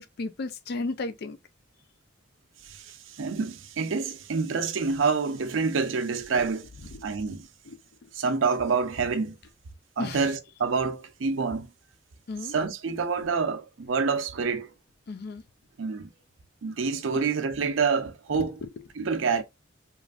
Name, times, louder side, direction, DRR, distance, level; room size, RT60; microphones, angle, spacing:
voice 1, 0.0-1.4 6.9-7.0 7.6-7.8 10.0-10.3 12.3-12.6 15.1-15.4 17.1-17.3 18.4-18.8, left 3 dB, 55° left, 0.4 m, -34 dB
voice 2, 2.6-6.6 7.0-7.5 8.2-9.3 10.0-11.7 12.5-14.7 15.8-16.1 16.6-18.6 19.0-19.4, right 5 dB, 80° right, 0.5 m, -27 dB
3.0 x 2.4 x 2.4 m
head